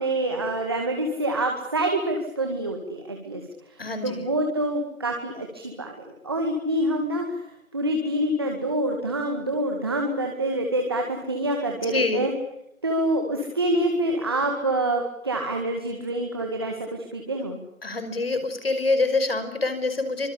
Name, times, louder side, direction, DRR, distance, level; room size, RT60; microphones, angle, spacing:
voice 1, 0.0-3.4 4.0-5.9 6.2-7.4 7.7-12.3 12.8-17.6, right 1 dB, 20° right, 2 dB, 2.1 m, -26 dB
voice 2, 3.8-4.2 11.9-12.2 17.8-20.3, left 3 dB, 45° left, 9 dB, 5.3 m, -25 dB
25.5 x 25.0 x 8.6 m, 0.80 s
figure-of-eight pair, 180°, 41 cm